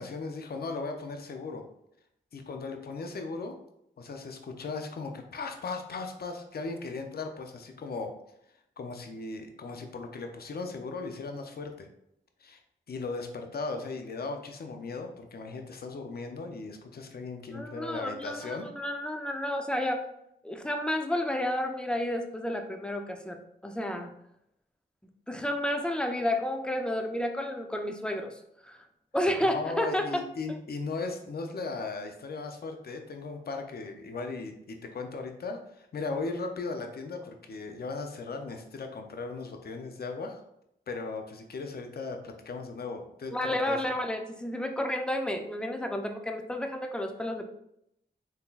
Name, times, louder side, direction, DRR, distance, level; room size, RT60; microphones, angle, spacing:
voice 1, 0.0-1.6 2.3-3.6 4.0-8.1 8.8-11.9 12.4-12.6 12.9-18.7 29.5-40.4 40.9-43.8, left 3 dB, 60° left, 5 dB, 0.5 m, -37 dB
voice 2, 17.5-20.0 20.4-24.1 25.3-28.8 29.1-30.6 43.3-47.5, left 1 dB, 5° left, 5 dB, 0.4 m, -31 dB
3.7 x 2.7 x 2.4 m, 0.77 s
cardioid pair, 50°, 18 cm